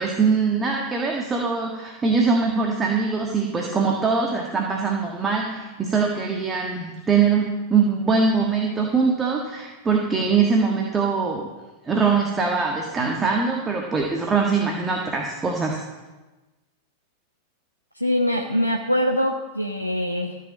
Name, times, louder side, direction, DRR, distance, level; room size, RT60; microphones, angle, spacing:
voice 1, 0.0-11.5 11.8-15.8, right 5 dB, 20° right, 0 dB, 1.5 m, -22 dB
voice 2, 17.9-20.4, equal, 90° left, 4 dB, 0.7 m, -23 dB
14.0 x 5.9 x 7.4 m, 1.2 s
figure-of-eight pair, 90°, 0 cm